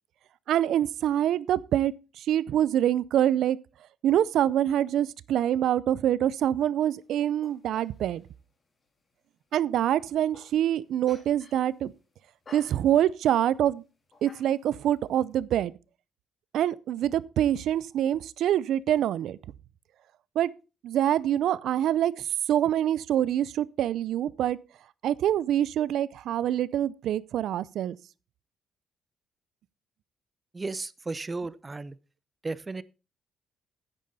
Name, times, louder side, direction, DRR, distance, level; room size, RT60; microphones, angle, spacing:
voice 1, 0.5-3.6 4.0-8.2 9.5-11.9 12.5-13.8 14.2-15.7 16.5-19.4 20.4-20.5 20.8-24.6 25.0-28.0, right 11 dB, 75° right, 0.5 m, -25 dB
sound 1, 7.0-8.5 8.8-8.9 9.5-9.6 10.1-10.8 11.0-12.0 12.4-13.5 14.1-14.9, left 3 dB, 40° left, 3.3 m, -54 dB
voice 2, 30.5-32.0 32.4-32.8, right 3 dB, 25° right, 0.6 m, -34 dB
10.5 x 9.1 x 4.1 m
cardioid pair, 90°, 0 cm